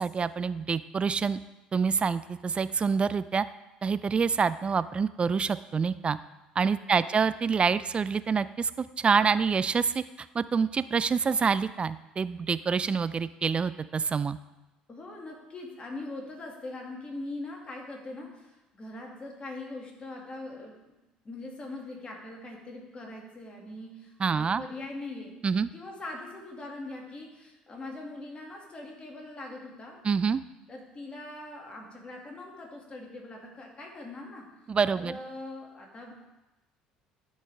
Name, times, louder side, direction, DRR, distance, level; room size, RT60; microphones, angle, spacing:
voice 1, 0.0-1.4 1.7-3.4 3.8-6.2 6.6-10.0 10.3-14.4 24.2-24.6 25.4-25.7 30.0-30.4 34.7-35.2, right 5 dB, 30° right, 15 dB, 0.4 m, -26 dB
voice 2, 6.8-7.2 14.9-20.9 21.2-25.4 25.7-30.1 30.7-34.5 34.9-36.3, left 2 dB, 30° left, 0 dB, 2.3 m, -42 dB
12.0 x 5.2 x 3.5 m, 0.99 s
hypercardioid pair, 60°, 4 cm